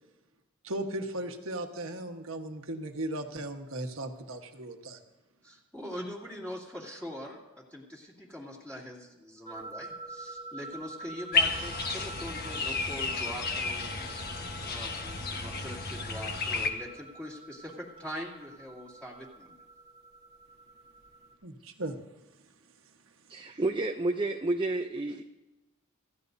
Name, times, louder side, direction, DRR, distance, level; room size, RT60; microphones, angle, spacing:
voice 1, 0.6-5.0 21.4-22.0, right 1 dB, 70° right, 4 dB, 1.4 m, -37 dB
voice 2, 5.4-19.5, equal, 5° left, -6 dB, 2.5 m, -43 dB
sound 1, 9.4-21.3, right 2 dB, 30° left, 2.6 m, -47 dB
sound 2, 11.3-16.7, left 4 dB, 50° left, 1.3 m, -32 dB
voice 3, 23.3-25.2, right 2 dB, 25° right, 4 dB, 0.6 m, -30 dB
26.0 x 15.0 x 2.7 m, 1.1 s
head